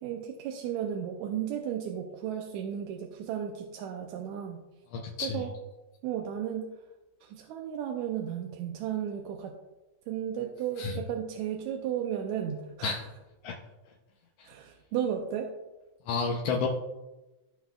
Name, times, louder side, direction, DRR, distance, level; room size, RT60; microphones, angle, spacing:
voice 1, 0.0-4.6 5.2-5.5 6.0-6.7 7.2-9.5 10.1-13.0 14.4-15.5, right 9 dB, 80° right, 3 dB, 1.9 m, -34 dB
voice 2, 4.9-5.4 10.8-10.9 12.8-13.0 13.4-13.5 16.1-16.7, left 5 dB, 70° left, -1 dB, 1.6 m, -30 dB
15.0 x 5.7 x 2.4 m, 1.1 s
omnidirectional pair, 3.5 m